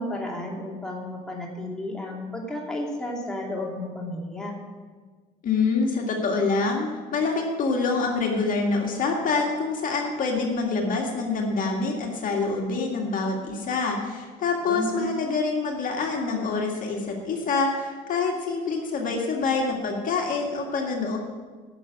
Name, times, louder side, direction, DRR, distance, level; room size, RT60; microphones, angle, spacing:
voice 1, 0.0-4.6 14.7-15.1, left 1 dB, 5° left, -3 dB, 2.6 m, -32 dB
voice 2, 5.4-21.2, left 4 dB, 55° left, 0 dB, 1.9 m, -26 dB
11.5 x 6.3 x 8.5 m, 1.4 s
cardioid pair, 110°, 17 cm